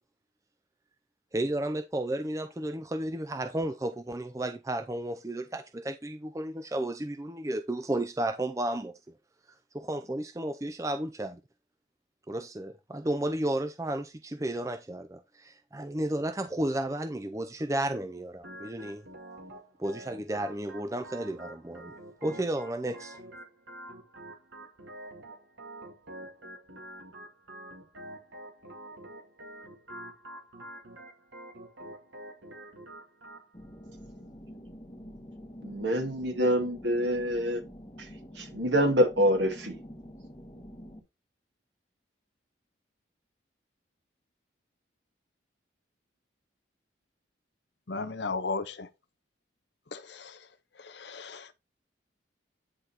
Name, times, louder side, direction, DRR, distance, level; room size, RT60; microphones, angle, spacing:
voice 1, 1.3-8.9 9.7-11.4 12.3-19.0 19.8-21.9 22.2-23.2, right 1 dB, 15° right, 0.5 m, -33 dB
Organ, 18.4-33.4, right 1 dB, 85° right, 2.1 m, -47 dB
sound 1, 33.5-41.0, equal, 25° left, 1.6 m, -47 dB
voice 2, 35.6-37.6 38.0-39.8, equal, 70° right, 2.2 m, -26 dB
voice 3, 47.9-48.9 49.9-51.5, left 3 dB, 65° left, 0.8 m, -36 dB
9.9 x 4.0 x 4.3 m
head